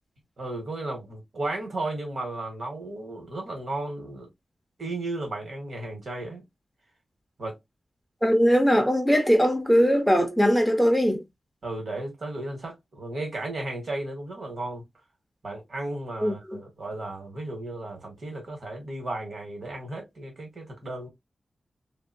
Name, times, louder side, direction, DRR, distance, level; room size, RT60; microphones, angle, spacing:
voice 1, 0.4-4.3 4.8-6.4 7.4-7.5 11.6-14.8 15.4-21.1, right 2 dB, 55° right, 1.5 m, -34 dB
voice 2, 8.2-11.2 16.2-16.6, equal, ahead, 0.6 m, -21 dB
2.8 x 2.6 x 2.7 m
wide cardioid pair, 170°, 0 cm